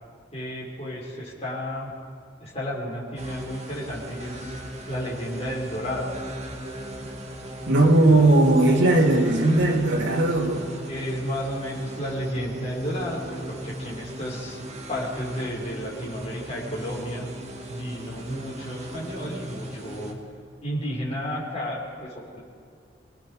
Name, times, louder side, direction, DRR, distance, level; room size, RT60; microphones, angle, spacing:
voice 1, 0.3-1.9 2.4-4.5 4.9-6.1 10.9-14.6 14.9-17.3 17.7-20.1 20.6-22.4, equal, 35° left, -5 dB, 5.5 m, -32 dB
sound 1, 3.2-20.1, right 1 dB, 40° right, 2.2 m, -38 dB
voice 2, 7.7-10.7, right 2 dB, 80° right, -1 dB, 2.7 m, -18 dB
28.0 x 19.0 x 5.1 m, 2.2 s
head